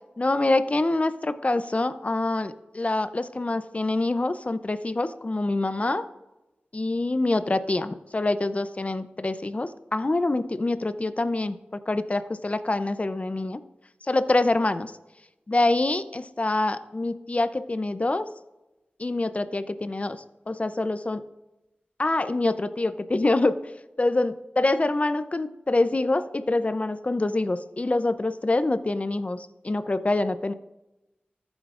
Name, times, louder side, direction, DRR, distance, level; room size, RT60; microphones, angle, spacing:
voice 1, 0.2-6.1 6.7-13.6 14.1-14.9 15.5-18.3 19.0-21.2 22.0-23.6 24.0-30.5, left 2 dB, 40° left, 13 dB, 0.5 m, -25 dB
14.5 x 8.9 x 2.5 m, 0.98 s
wide cardioid pair, 55°, 4 cm